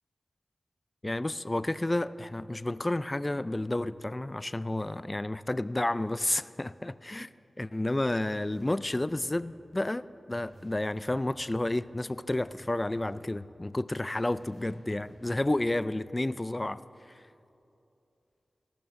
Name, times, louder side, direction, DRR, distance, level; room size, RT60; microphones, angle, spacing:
voice 1, 1.0-7.3 7.6-16.8, left 1 dB, 25° left, 16 dB, 0.3 m, -31 dB
sound 1, 8.3-9.5 10.3-11.5 12.3-13.5 14.3-15.5, equal, 80° right, 2.6 m, -55 dB
16.5 x 6.6 x 6.8 m, 2.8 s
cardioid pair, 55°, 0 cm